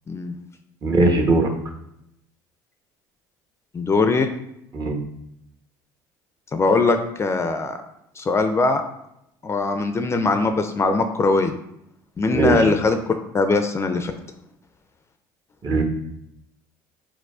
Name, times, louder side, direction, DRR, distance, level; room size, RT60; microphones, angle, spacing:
voice 1, 0.8-1.5 4.7-5.0 12.3-12.7 15.6-15.8, right 3 dB, 35° right, 3 dB, 0.9 m, -19 dB
voice 2, 3.7-4.3 6.5-7.8 8.2-8.8 9.4-11.5 12.2-14.1, left 3 dB, 25° left, 7 dB, 0.4 m, -21 dB
4.5 x 4.2 x 2.4 m, 0.80 s
hypercardioid pair, 80°, 10 cm